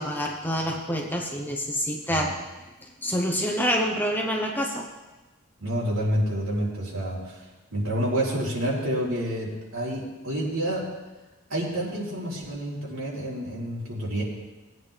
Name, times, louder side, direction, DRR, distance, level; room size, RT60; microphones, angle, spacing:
voice 1, 0.0-2.3 2.8-4.9, equal, 10° left, 0 dB, 0.9 m, -27 dB
voice 2, 5.6-7.4 7.7-10.9 11.5-14.2, right 1 dB, 75° right, -5 dB, 3.5 m, -28 dB
18.5 x 9.0 x 3.4 m, 1.1 s
head